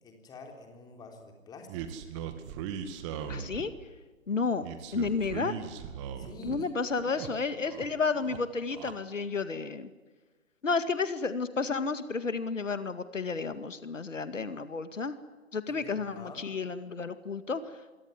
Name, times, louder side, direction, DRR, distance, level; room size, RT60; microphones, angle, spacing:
voice 1, 0.0-1.8 6.2-7.0 7.2-7.5 15.7-16.5, left 3 dB, 10° left, 3 dB, 3.7 m, -48 dB
sound 1, 1.7-3.8 4.6-6.6 6.9-7.9 8.1-8.9, right 8 dB, 25° right, 2.3 m, -39 dB
voice 2, 3.3-3.7 4.3-4.7 4.9-5.5 6.5-9.9 10.6-15.1 15.5-17.6, left 4 dB, 70° left, 11 dB, 2.2 m, -31 dB
26.0 x 23.5 x 9.8 m, 1.3 s
figure-of-eight pair, 140°, 39 cm